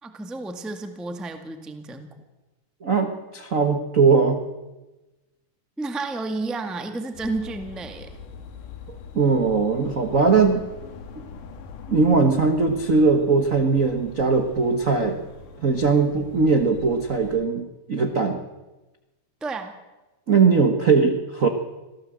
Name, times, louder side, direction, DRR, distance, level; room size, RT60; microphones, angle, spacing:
voice 1, 0.0-2.1 5.8-8.1 19.4-19.7, right 3 dB, ahead, 6 dB, 0.6 m, -31 dB
voice 2, 2.8-4.4 9.1-10.6 11.9-15.2 15.6-18.4 20.3-21.5, right 4 dB, 65° right, 6 dB, 0.8 m, -20 dB
sound 1, 7.1-17.4, left 4 dB, 75° left, 3.3 m, -42 dB
26.0 x 17.0 x 7.8 m, 1.1 s
omnidirectional pair, 3.8 m